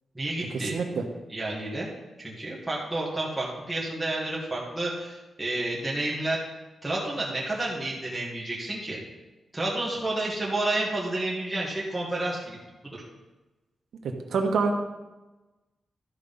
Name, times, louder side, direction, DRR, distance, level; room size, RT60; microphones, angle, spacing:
voice 1, 0.1-0.7 1.3-1.9 2.2-6.4 6.8-9.0 9.5-12.6 12.8-13.0, right 2 dB, 5° right, -6 dB, 2.0 m, -30 dB
voice 2, 0.7-1.0 14.0-14.7, right 4 dB, 80° right, 3 dB, 1.2 m, -26 dB
13.0 x 5.0 x 5.5 m, 1.1 s
wide cardioid pair, 165°, 0 cm